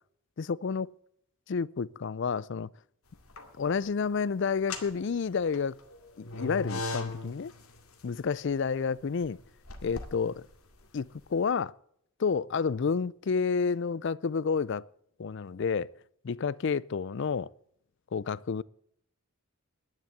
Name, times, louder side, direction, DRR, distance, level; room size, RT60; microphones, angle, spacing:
voice 1, 0.4-0.9 1.5-2.7 3.6-5.8 6.2-7.5 8.0-9.4 9.8-10.5 10.9-11.7 12.2-14.8 15.2-15.9 16.2-17.5 18.1-18.6, left 5 dB, 55° left, 0.4 m, -30 dB
sound 1, 3.1-3.8 4.5-11.4, left 2 dB, 90° left, 2.2 m, -40 dB
10.5 x 10.5 x 7.9 m
head